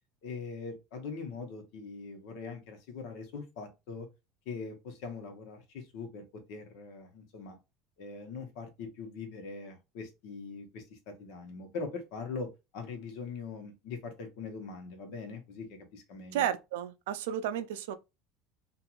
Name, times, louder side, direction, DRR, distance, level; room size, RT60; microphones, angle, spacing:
voice 1, 0.2-4.1 4.4-7.6 8.0-16.5, left 4 dB, 70° left, 1.0 m, -42 dB
voice 2, 16.3-18.0, right 10 dB, 90° right, 0.4 m, -32 dB
2.9 x 2.5 x 2.4 m
supercardioid pair, 125°, 0 cm